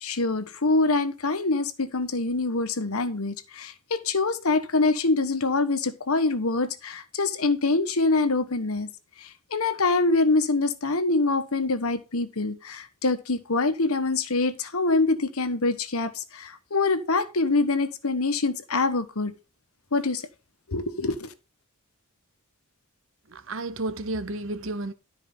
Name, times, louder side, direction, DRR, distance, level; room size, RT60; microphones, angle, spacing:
voice 1, 0.0-8.9 9.2-19.3 19.9-20.2 20.7-21.3, left 3 dB, 75° left, 1.3 m, -25 dB
voice 2, 23.3-24.9, right 2 dB, 60° right, 0.9 m, -32 dB
12.5 x 4.9 x 5.5 m
head